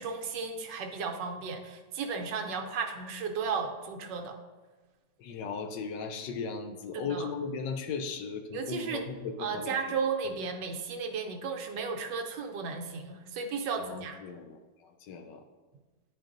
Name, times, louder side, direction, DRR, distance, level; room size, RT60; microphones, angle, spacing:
voice 1, 0.0-4.4 6.9-7.3 8.5-9.0 9.4-14.2, right 5 dB, 75° right, 4 dB, 1.3 m, -34 dB
voice 2, 5.2-10.0 13.8-15.4, left 5 dB, 75° left, 6 dB, 1.2 m, -37 dB
10.5 x 4.5 x 2.5 m, 1.3 s
omnidirectional pair, 2.0 m